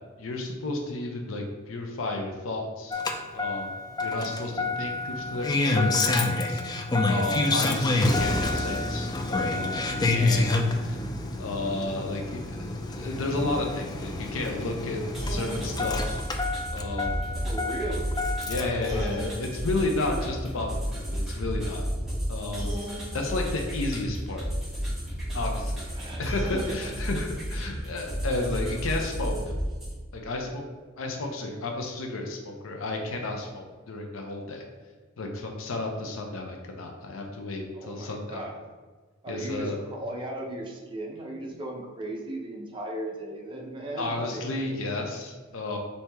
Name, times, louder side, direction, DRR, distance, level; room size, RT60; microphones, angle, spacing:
voice 1, 0.2-3.0 3.3-3.7 4.0-10.5 10.7-11.0 11.4-16.3 16.7-17.1 18.5-21.8 22.3-22.8 23.1-24.4 25.3-25.9 26.2-29.3 30.1-30.6 31.0-34.7 35.2-38.4 39.3-39.8 44.0-45.8, left 2 dB, 80° left, 2 dB, 0.6 m, -32 dB
Engine starting, 2.9-18.8 20.1-20.2, left 2 dB, 20° left, 0.3 m, -28 dB
sound 1, 15.1-29.9, equal, ahead, 1.2 m, -32 dB
voice 2, 17.4-18.1 18.5-19.1 19.7-20.3 25.9-26.8 28.3-28.5 37.7-38.6 39.2-44.4, right 1 dB, 25° right, 0 dB, 0.6 m, -37 dB
4.4 x 2.8 x 3.4 m, 1.4 s
head